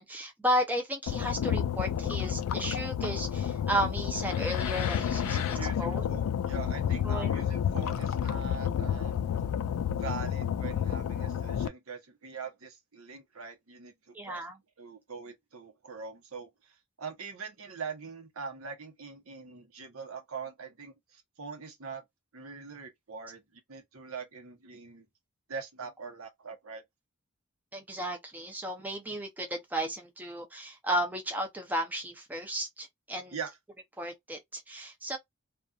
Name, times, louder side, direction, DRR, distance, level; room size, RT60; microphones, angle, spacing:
voice 1, 0.0-6.1 7.0-7.4 14.1-14.6 27.7-33.4 34.0-35.2, right 1 dB, 10° right, 0.5 m, -34 dB
sound 1, 1.1-11.7, left 9 dB, 85° left, 0.3 m, -30 dB
voice 2, 5.3-9.2 10.0-14.5 14.8-22.0 22.3-25.1 25.5-26.8 33.3-33.6, right 5 dB, 70° right, 0.9 m, -43 dB
2.6 x 2.3 x 2.3 m
head